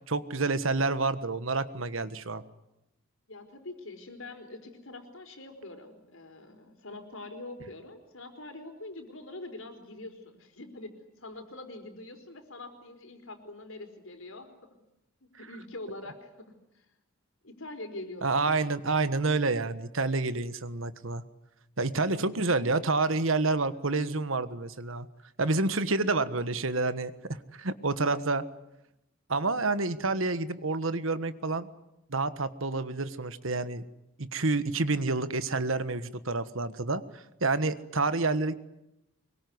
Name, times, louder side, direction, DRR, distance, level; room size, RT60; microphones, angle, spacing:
voice 1, 0.1-2.4 18.2-21.2 21.8-25.1 25.4-27.1 27.5-28.4 29.3-31.7 32.1-33.8 34.2-38.5, right 3 dB, 70° right, 12 dB, 1.5 m, -28 dB
voice 2, 3.3-14.5 15.4-16.8 17.4-18.8 22.1-22.6, left 2 dB, 70° left, 7 dB, 4.7 m, -44 dB
25.0 x 22.5 x 9.6 m, 0.87 s
head